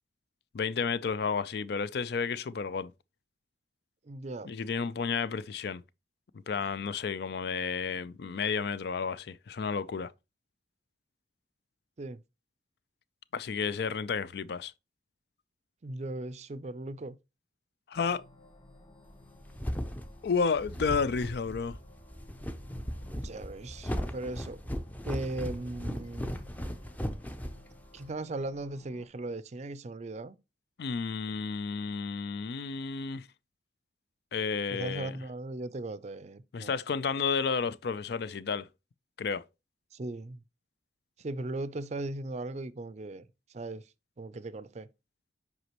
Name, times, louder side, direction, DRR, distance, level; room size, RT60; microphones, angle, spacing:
voice 1, 0.5-2.9 4.4-5.8 6.5-10.1 13.3-14.7 17.9-18.2 20.2-21.8 30.8-33.3 34.3-35.2 36.5-38.7 39.2-39.4, left 5 dB, 60° left, 0.4 m, -31 dB
voice 2, 4.1-4.5 12.0-12.2 15.8-17.2 23.1-24.6 25.0-26.4 27.9-30.4 34.7-36.7 39.9-40.4 41.2-43.3 43.5-43.8 44.2-44.9, right 2 dB, 40° right, 0.5 m, -38 dB
sound 1, 17.9-29.1, left 2 dB, 30° left, 2.0 m, -56 dB
sound 2, 19.2-28.1, equal, 10° left, 0.6 m, -37 dB
8.0 x 5.1 x 3.0 m
head